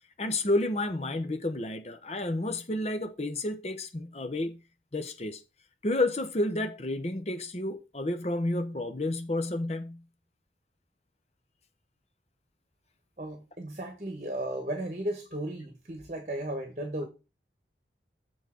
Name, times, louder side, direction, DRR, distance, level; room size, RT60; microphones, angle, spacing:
voice 1, 0.2-4.6 4.9-5.4 5.8-10.0, left 2 dB, 35° left, 0.8 m, -30 dB
voice 2, 13.2-17.1, right 1 dB, 40° right, 1.1 m, -35 dB
7.2 x 3.9 x 6.3 m
head